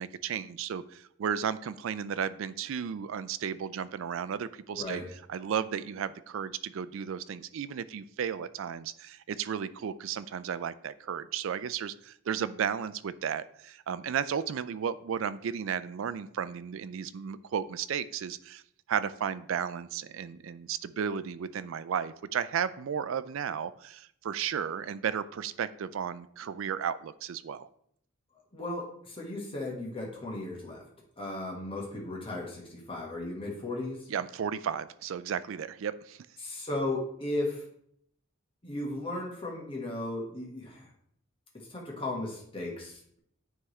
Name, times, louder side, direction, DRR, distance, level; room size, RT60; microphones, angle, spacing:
voice 1, 0.0-18.6 18.9-27.7 34.1-36.3, right 7 dB, 70° right, 15 dB, 0.3 m, -34 dB
voice 2, 4.7-5.1 28.5-30.8 31.2-34.1 36.4-37.6 38.6-40.9 41.5-43.2, left 2 dB, 25° left, -2 dB, 1.5 m, -36 dB
9.4 x 3.6 x 3.2 m, 0.67 s
head